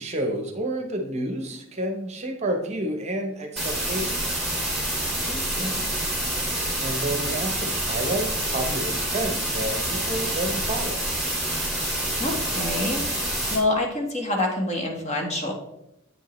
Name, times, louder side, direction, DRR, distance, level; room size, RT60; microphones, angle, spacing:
voice 1, 0.0-4.5 6.8-11.1, right 1 dB, 30° right, 4 dB, 0.8 m, -30 dB
sound 1, 3.6-13.6, right 1 dB, ahead, 2.3 m, -27 dB
voice 2, 5.3-5.7 12.2-15.5, left 2 dB, 35° left, 1 dB, 1.2 m, -27 dB
8.1 x 5.3 x 3.1 m, 0.82 s
head